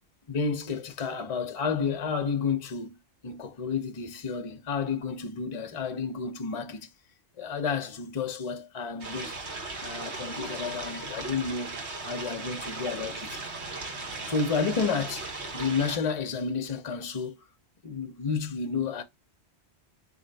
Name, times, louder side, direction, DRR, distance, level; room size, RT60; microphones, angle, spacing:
voice 1, 0.3-6.9 7.4-9.4 9.8-11.8 12.0-13.4 14.2-17.4 17.8-19.0, left 5 dB, 40° left, 0.7 m, -31 dB
sound 1, 9.0-16.0, right 3 dB, 85° right, 1.4 m, -37 dB
4.3 x 2.8 x 3.9 m
omnidirectional pair, 1.1 m